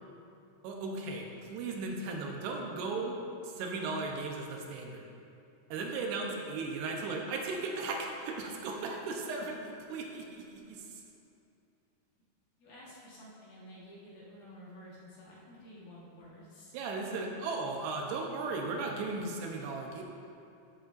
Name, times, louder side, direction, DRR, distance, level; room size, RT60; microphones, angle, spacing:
voice 1, 0.6-5.1 5.7-11.0 16.7-20.0, right 3 dB, 80° right, 1 dB, 3.0 m, -36 dB
voice 2, 12.6-16.7, equal, 60° left, -7 dB, 2.7 m, -52 dB
14.5 x 7.9 x 2.6 m, 2.6 s
omnidirectional pair, 4.7 m